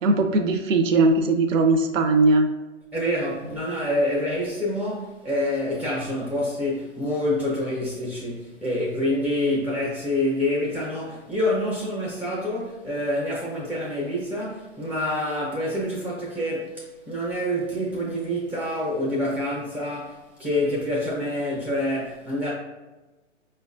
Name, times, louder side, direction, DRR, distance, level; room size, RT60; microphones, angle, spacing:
voice 1, 0.0-2.5, right 3 dB, 75° right, 0.6 m, -19 dB
voice 2, 2.9-22.5, left 1 dB, 5° right, 0.5 m, -27 dB
5.2 x 2.2 x 2.6 m
hypercardioid pair, 145°, 38 cm